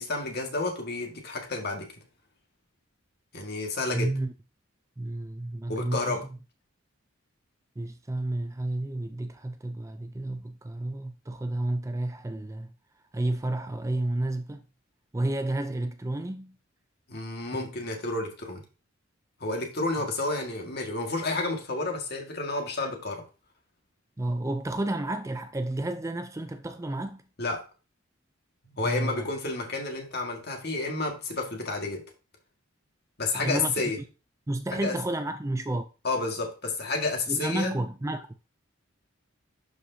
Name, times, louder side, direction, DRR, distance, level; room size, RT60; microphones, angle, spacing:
voice 1, 0.0-1.9 3.3-4.1 5.7-6.2 17.1-18.6 19.4-23.2 27.4-27.6 28.6-32.0 33.2-34.0 34.7-34.9 36.0-37.7, left 3 dB, 50° left, 1.8 m, -30 dB
voice 2, 3.9-4.3 5.0-6.2 7.8-12.7 13.1-14.6 15.1-16.6 17.6-17.7 24.2-27.2 28.8-29.3 33.3-33.7 34.5-35.9 37.3-38.3, right 1 dB, 15° right, 0.4 m, -31 dB
11.5 x 4.8 x 2.7 m
head